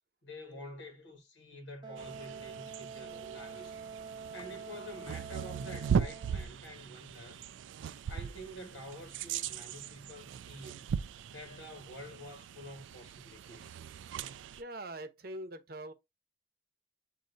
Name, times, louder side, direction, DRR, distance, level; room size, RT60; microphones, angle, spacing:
voice 1, 0.2-3.8 4.3-7.4 8.0-10.9 11.3-13.8, equal, 85° left, 1.5 m, -48 dB
Wind instrument woodwind instrument, 1.8-6.5, right 5 dB, 25° right, 0.5 m, -46 dB
sound 1, 2.0-14.6, right 7 dB, 90° right, 0.3 m, -39 dB
voice 2, 14.6-15.9, right 1 dB, 55° right, 0.8 m, -43 dB
7.5 x 2.7 x 2.6 m
head